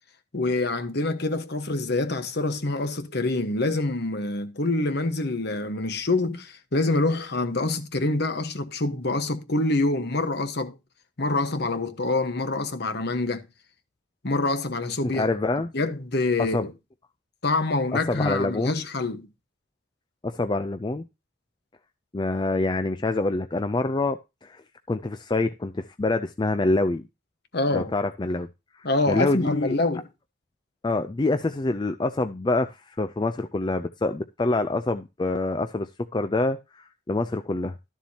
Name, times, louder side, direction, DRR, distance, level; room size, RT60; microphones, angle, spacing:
voice 1, 0.3-10.8 11.2-13.5 14.2-15.3 15.7-16.7 17.4-19.3 27.5-27.9 28.8-30.0, left 2 dB, 50° left, 1.2 m, -26 dB
voice 2, 15.1-15.7 16.5-16.7 17.9-18.8 20.2-21.0 22.1-24.6 24.9-27.1 27.7-28.5 28.7-29.7 30.8-37.8, left 2 dB, 20° left, 0.4 m, -26 dB
13.0 x 7.2 x 2.8 m
head